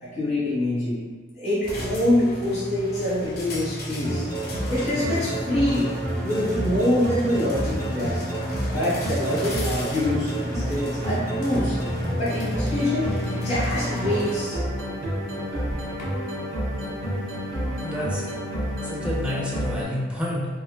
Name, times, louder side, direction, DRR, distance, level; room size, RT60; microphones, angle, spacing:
voice 1, 0.0-1.0 1.3-4.3 4.7-5.9 6.2-8.2 8.7-11.8 12.2-13.1 13.4-14.6, left 1 dB, 35° left, -9 dB, 1.0 m, -25 dB
sound 1, 1.6-16.0, left 1 dB, 50° left, 0.6 m, -34 dB
sound 2, 4.0-19.8, equal, 50° right, 1.1 m, -29 dB
voice 2, 17.8-18.3 18.8-20.5, left 1 dB, 5° right, -5 dB, 0.4 m, -29 dB
3.1 x 2.0 x 2.2 m, 1.5 s
head